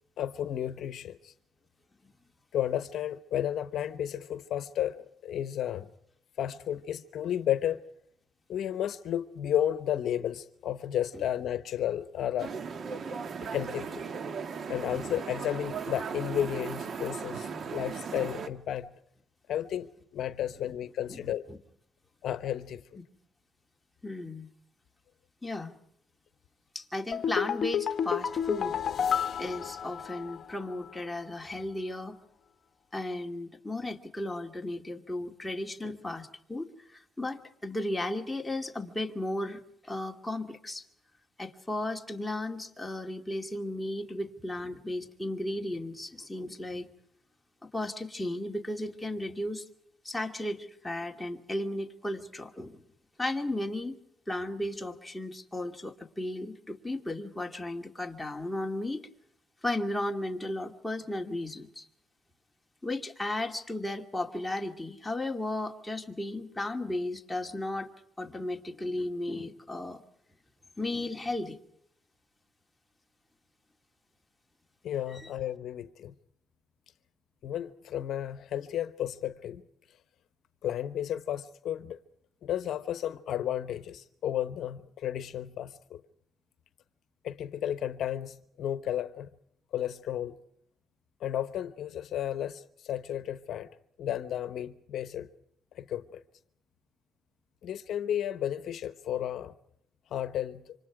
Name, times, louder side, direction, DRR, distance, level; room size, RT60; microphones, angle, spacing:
voice 1, 0.2-1.3 2.5-5.9 6.4-7.8 8.5-12.5 13.4-14.0 14.7-18.9 19.5-21.4 22.2-22.8 74.8-76.1 77.4-79.6 80.6-82.0 82.4-86.0 87.2-89.3 89.7-90.4 91.2-93.7 94.0-95.3 95.8-96.2 97.6-99.5 100.1-100.7, left 11 dB, 70° left, 1.0 m, -33 dB
sound 1, 12.4-18.5, right 5 dB, 55° right, 1.7 m, -37 dB
voice 2, 21.1-21.6 24.0-24.5 25.4-25.8 26.7-32.2 32.9-40.8 41.4-46.9 47.7-49.6 50.0-52.8 53.2-54.0 54.3-59.1 59.6-61.9 62.8-67.9 68.2-70.0 70.8-71.6 75.1-75.3, left 1 dB, 10° left, 2.5 m, -35 dB
sound 2, 27.1-30.5 30.8-30.9, left 8 dB, 50° left, 1.3 m, -30 dB
27.5 x 25.5 x 4.9 m
cardioid pair, 90°, 0 cm